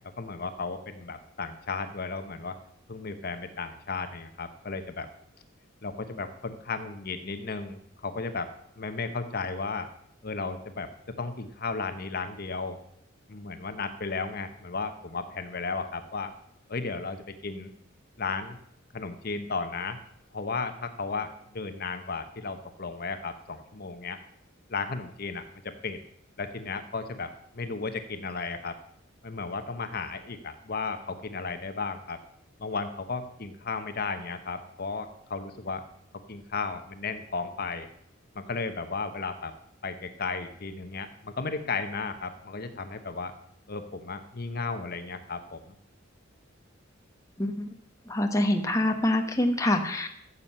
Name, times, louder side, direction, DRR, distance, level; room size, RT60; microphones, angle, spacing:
voice 1, 0.2-2.6 2.9-5.1 5.8-8.5 8.8-9.9 10.2-12.8 13.3-16.3 16.7-17.7 18.2-18.6 18.9-20.0 20.3-24.2 24.7-26.0 26.4-28.8 29.2-32.2 32.6-35.8 36.3-37.9 38.3-39.5 39.8-43.3 43.7-45.7, left 4 dB, 50° left, 9 dB, 0.9 m, -34 dB
voice 2, 47.4-47.7 48.1-50.1, left 1 dB, 15° left, 4 dB, 1.0 m, -25 dB
14.0 x 7.5 x 5.5 m, 0.72 s
head